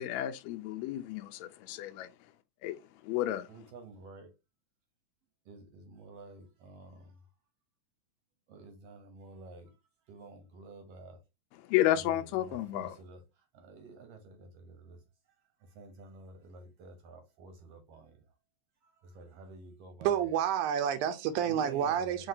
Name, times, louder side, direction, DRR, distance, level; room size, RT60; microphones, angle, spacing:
voice 1, 0.0-2.1 2.6-2.8 3.0-3.5 11.6-12.9, left 13 dB, 80° left, 1.6 m, -31 dB
voice 2, 3.5-4.3 5.4-7.2 8.5-9.7 10.1-11.2 12.0-15.0 15.6-18.2 18.8-20.2 21.5-22.3, right 3 dB, 65° right, 1.6 m, -51 dB
voice 3, 20.0-22.3, right 9 dB, 85° right, 2.2 m, -29 dB
5.7 x 2.8 x 2.7 m
omnidirectional pair, 3.6 m